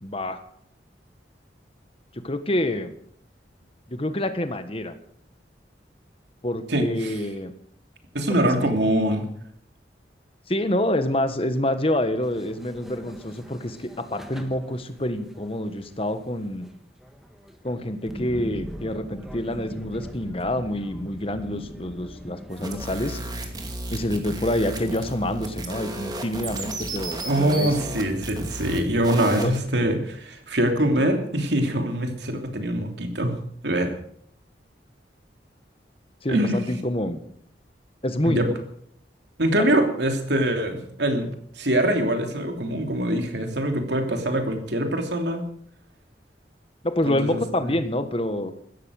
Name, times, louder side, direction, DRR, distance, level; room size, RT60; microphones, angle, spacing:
voice 1, 0.0-0.4 2.1-2.9 3.9-4.9 6.4-7.5 8.3-8.7 10.5-16.7 17.6-23.2 23.9-27.7 29.3-29.5 36.2-37.2 38.0-38.5 39.6-39.7 46.8-48.5, left 1 dB, 30° left, 9 dB, 1.5 m, -27 dB
voice 2, 6.7-7.1 8.1-9.3 27.2-33.4 33.6-33.9 36.3-36.7 38.2-38.5 39.4-45.4 47.0-47.4, right 1 dB, 75° right, 4 dB, 3.1 m, -24 dB
sound 1, 12.1-23.2, equal, ahead, 1.6 m, -41 dB
sound 2, 22.5-29.6, right 1 dB, 25° right, 2.6 m, -34 dB
16.0 x 13.5 x 6.5 m, 0.65 s
head